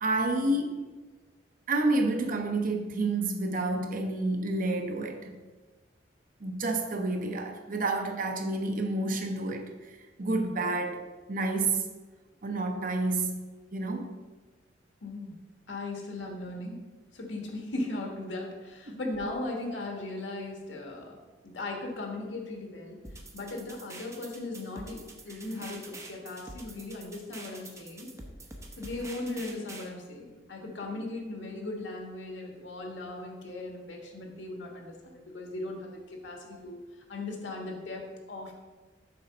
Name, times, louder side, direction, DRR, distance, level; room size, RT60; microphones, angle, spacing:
voice 1, 0.0-0.8 1.7-5.3 6.4-11.0 11.3-11.9 12.4-13.4 13.7-14.2 18.9-19.0, right 2 dB, 50° right, 0.7 m, -29 dB
voice 2, 15.0-15.3 15.7-16.8 17.1-21.2 21.4-23.0 23.3-28.1 28.8-36.8 37.1-38.5, left 2 dB, 85° left, 1.4 m, -38 dB
sound 1, 23.0-29.9, right 2 dB, 15° right, 0.8 m, -46 dB
6.9 x 3.9 x 5.4 m
head